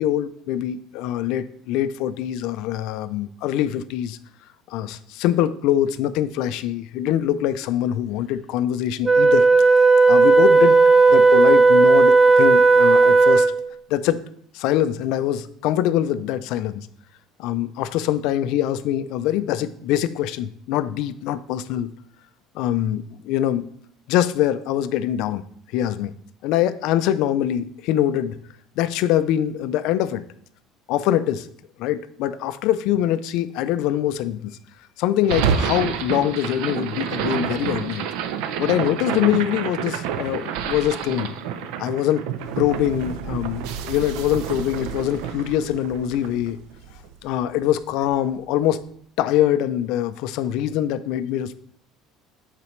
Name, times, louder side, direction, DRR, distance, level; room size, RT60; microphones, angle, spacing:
voice 1, 0.0-4.2 4.7-9.7 10.1-10.8 11.1-13.5 13.9-14.2 14.5-16.9 17.4-21.9 22.5-23.7 24.1-25.4 25.7-26.1 26.4-28.4 28.8-30.2 30.9-31.5 31.8-34.6 35.0-38.1 38.6-41.4 41.8-42.3 42.6-46.6 47.2-48.8 49.2-51.6, left 11 dB, 65° left, 13 dB, 0.3 m, -23 dB
Wind instrument woodwind instrument, 9.0-13.7, right 3 dB, 15° right, 0.3 m, -14 dB
sound 1, 35.2-47.5, right 7 dB, 80° right, 0.5 m, -28 dB
8.7 x 4.1 x 3.1 m, 0.65 s
cardioid pair, 155°, 0 cm